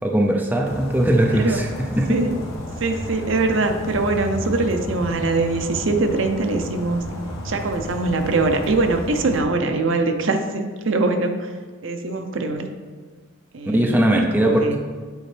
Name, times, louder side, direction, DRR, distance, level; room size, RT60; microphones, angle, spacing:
voice 1, 0.0-2.2 13.7-14.8, right 1 dB, 10° right, 0 dB, 0.5 m, -19 dB
sound 1, 0.6-9.4, left 1 dB, 70° left, 1.1 m, -33 dB
voice 2, 1.3-1.6 2.1-2.4 2.8-7.1 7.4-11.5 11.8-12.7 13.5-14.0 14.4-14.8, right 3 dB, 65° right, 6 dB, 0.6 m, -22 dB
9.3 x 4.3 x 3.3 m, 1.5 s
head